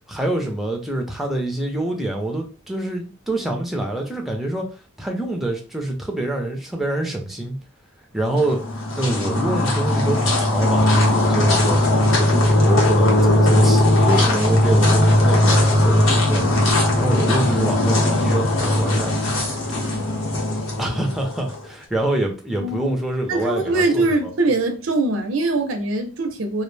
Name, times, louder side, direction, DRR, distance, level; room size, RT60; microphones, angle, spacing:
voice 1, 0.1-4.7 5.0-7.6 8.1-8.6 9.0-19.1 20.8-24.3, right 1 dB, ahead, 0.5 m, -26 dB
sound 1, 8.3-21.6, left 1 dB, 85° left, 0.8 m, -18 dB
voice 2, 22.6-23.0 23.3-26.6, right 2 dB, 80° right, 0.5 m, -22 dB
2.3 x 2.0 x 3.2 m
head